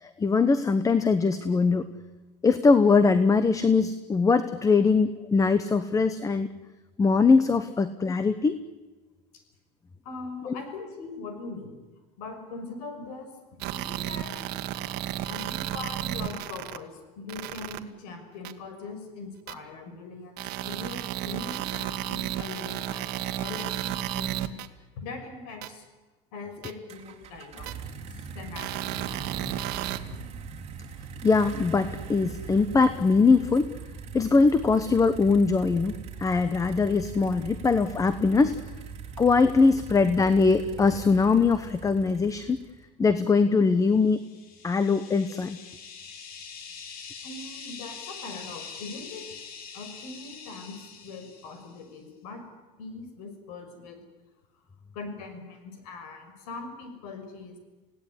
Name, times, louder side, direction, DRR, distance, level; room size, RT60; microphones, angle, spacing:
voice 1, 0.0-1.9 2.4-6.5 7.0-8.6 10.5-10.6 31.2-33.7 34.1-35.9 36.2-38.6 39.2-42.6 43.0-44.2 44.6-45.6, left 4 dB, 15° left, 12 dB, 1.0 m, -22 dB
voice 2, 10.0-11.8 12.2-13.3 13.7-14.4 14.7-14.9 15.3-24.4 25.0-25.9 26.3-27.7 28.1-29.0 30.1-30.2 47.2-49.2 49.7-50.8 51.0-52.4 52.8-54.0 54.9-57.5, left 3 dB, 85° left, 7 dB, 6.4 m, -41 dB
sound 1, 13.6-16.8 17.3-17.8 18.5-18.6 19.5-19.6 20.4-24.7 25.6-25.7 26.6-26.7 27.7-27.8 28.6-30.0, right 13 dB, 60° right, 1.7 m, -33 dB
sound 2, 26.9-42.9, right 6 dB, 35° right, 3.5 m, -41 dB
sound 3, 44.0-51.8, left 6 dB, 50° left, 3.6 m, -44 dB
28.0 x 17.5 x 9.8 m, 1.2 s
supercardioid pair, 135°, 19 cm